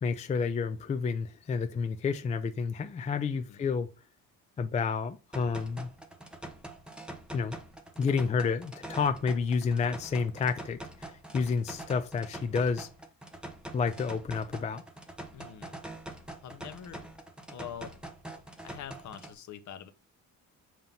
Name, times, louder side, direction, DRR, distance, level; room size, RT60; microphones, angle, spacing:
voice 1, 0.0-3.9 4.6-5.9 7.3-7.6 8.0-12.9 13.7-14.8, left 5 dB, 20° left, 0.3 m, -30 dB
sound 1, 5.3-19.3, right 1 dB, 5° right, 0.9 m, -44 dB
voice 2, 15.3-15.7 16.4-17.1 17.5-18.0 18.6-19.9, left 9 dB, 55° left, 1.0 m, -44 dB
7.6 x 2.9 x 5.2 m
cardioid pair, 145°, 35 cm